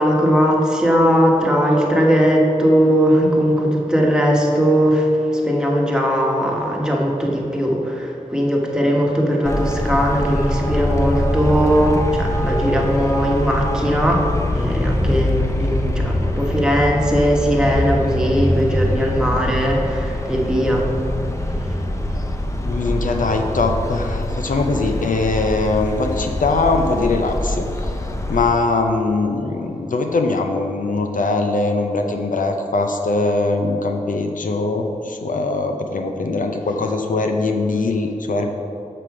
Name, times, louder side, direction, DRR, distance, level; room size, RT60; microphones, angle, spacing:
voice 1, 0.0-5.1 5.5-14.2 14.5-20.9, equal, 5° right, -2 dB, 1.3 m, -18 dB
Traffic noise roadway noise, 9.5-28.4, left 1 dB, 20° left, 0.7 m, -23 dB
voice 2, 22.6-27.9 28.3-38.5, left 3 dB, 75° left, 4 dB, 0.6 m, -21 dB
6.6 x 5.9 x 4.8 m, 2.8 s
wide cardioid pair, 55°, 14 cm